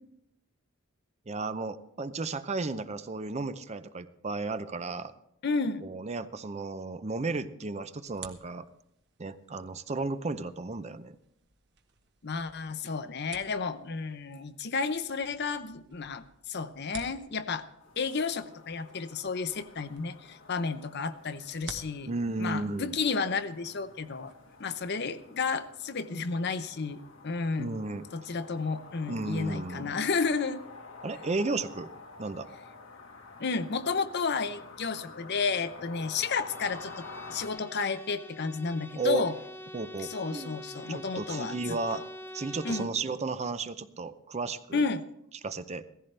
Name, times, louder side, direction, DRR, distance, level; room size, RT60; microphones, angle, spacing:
voice 1, 1.3-5.1 5.8-8.6 9.2-11.2 22.1-22.9 27.6-28.0 29.1-30.0 31.0-31.9 32.2-32.5 38.9-39.3 39.7-40.6 40.9-42.0 42.3-44.8 45.4-45.8, right 3 dB, 35° right, 12 dB, 0.6 m, -34 dB
voice 2, 5.4-5.9 12.2-17.7 18.0-22.1 22.4-24.3 24.6-27.8 28.1-30.6 33.4-37.0 37.3-39.3 40.0-41.6 41.9-42.0 42.6-42.9 44.7-45.0, left 4 dB, 55° left, 11 dB, 0.7 m, -32 dB
sound 1, 7.9-24.9, right 6 dB, 60° right, 1.1 m, -53 dB
sound 2, 17.8-37.5, left 3 dB, 75° left, 1.5 m, -49 dB
Bowed string instrument, 36.4-43.0, left 1 dB, 10° left, 0.8 m, -45 dB
17.0 x 14.5 x 3.3 m, 0.76 s
head